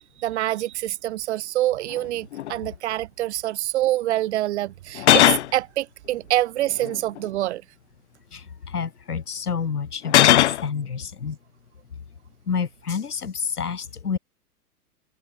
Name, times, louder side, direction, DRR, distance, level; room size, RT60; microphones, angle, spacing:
voice 1, 0.2-7.6, right 15 dB, 45° right, 1.9 m, -26 dB
sound 1, 1.9-2.0 2.3-2.5 4.9-5.5 6.7-7.2 10.0-10.6, left 13 dB, 50° left, 0.7 m, -17 dB
voice 2, 8.3-11.4 12.5-14.2, left 6 dB, 75° left, 6.4 m, -29 dB
open air
figure-of-eight pair, 115°, 46 cm